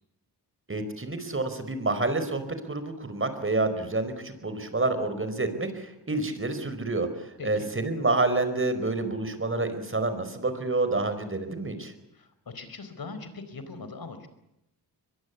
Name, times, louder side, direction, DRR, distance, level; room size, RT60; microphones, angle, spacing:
voice 1, 0.7-11.9, right 2 dB, 30° right, 10 dB, 5.0 m, -28 dB
voice 2, 7.4-7.7 12.1-14.3, left 3 dB, 60° left, 11 dB, 4.7 m, -41 dB
23.5 x 22.0 x 8.5 m, 0.86 s
cardioid pair, 80°, 41 cm